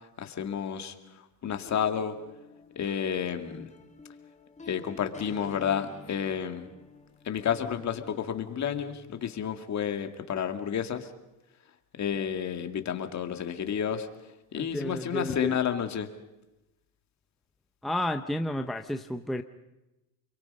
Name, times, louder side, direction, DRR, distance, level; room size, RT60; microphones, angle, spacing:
voice 1, 0.2-2.2 2.8-3.7 4.7-6.7 7.2-11.1 12.0-14.1 14.5-16.1, left 8 dB, 40° left, 6 dB, 2.3 m, -31 dB
sound 1, 1.6-9.6, left 3 dB, 15° left, 2.1 m, -49 dB
voice 2, 14.5-15.6 17.8-19.4, left 1 dB, ahead, 6 dB, 0.8 m, -32 dB
30.0 x 23.0 x 5.5 m, 1.0 s
supercardioid pair, 110°, 42 cm